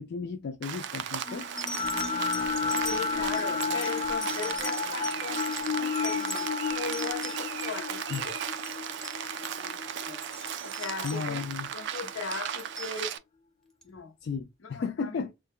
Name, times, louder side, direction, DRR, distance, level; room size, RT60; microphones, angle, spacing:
voice 1, 0.0-1.5 8.1-8.2 11.0-11.7 14.2-15.3, left 5 dB, 55° left, 0.3 m, -34 dB
Rain, 0.6-13.2, right 9 dB, 60° right, 0.4 m, -36 dB
sound 1, 1.0-1.1 1.6-7.7 8.0-8.8 9.0-9.2 9.4-9.6 10.1-11.7 12.3-12.9 13.8-13.9, equal, 5° left, 0.7 m, -41 dB
sound 2, 1.2-11.4, left 5 dB, 35° left, 0.9 m, -32 dB
voice 2, 2.8-8.4 9.4-10.2 10.6-13.2 13.8-14.1 14.6-15.2, left 5 dB, 70° left, 0.8 m, -39 dB
3.4 x 2.1 x 3.5 m
head